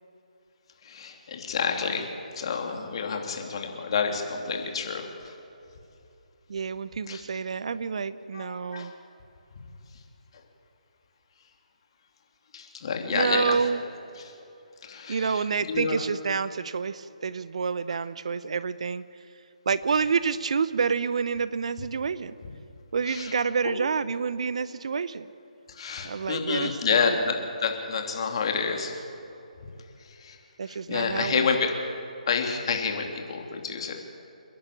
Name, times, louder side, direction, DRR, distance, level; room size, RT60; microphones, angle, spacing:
voice 1, 0.8-2.1 2.3-5.3 7.1-7.2 8.3-8.9 12.5-13.6 14.2-14.3 14.8-15.4 15.7-16.0 23.1-23.3 25.7-29.0 30.1-30.4 30.7-31.7 32.3-34.0, left 5 dB, 40° left, 3 dB, 3.0 m, -29 dB
voice 2, 6.5-8.9 13.1-13.8 15.1-19.0 19.7-22.3 22.9-25.3 26.0-27.1 30.6-31.5, right 5 dB, 50° right, 16 dB, 0.7 m, -28 dB
29.5 x 11.0 x 8.7 m, 2.9 s
figure-of-eight pair, 145°, 4 cm